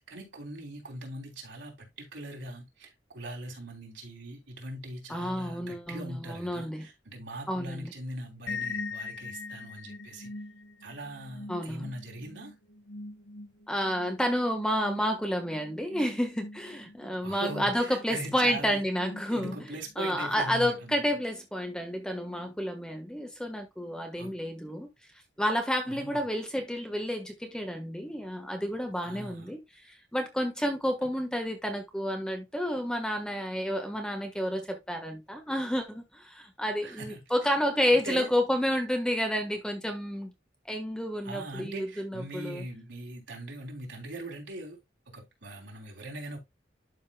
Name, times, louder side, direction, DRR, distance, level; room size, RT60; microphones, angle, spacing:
voice 1, 0.0-10.3 10.8-12.5 17.2-18.8 19.3-21.0 24.2-24.3 25.8-26.2 29.0-29.5 36.8-37.2 37.9-38.3 41.2-44.8 45.1-46.4, right 1 dB, 85° right, 3.1 m, -41 dB
voice 2, 5.1-6.9 7.5-7.9 11.5-11.9 13.7-24.9 25.4-29.6 29.9-40.3 40.7-42.6, equal, 5° left, 1.3 m, -30 dB
sound 1, 8.5-20.1, left 3 dB, 70° left, 1.1 m, -43 dB
11.5 x 5.4 x 2.2 m
head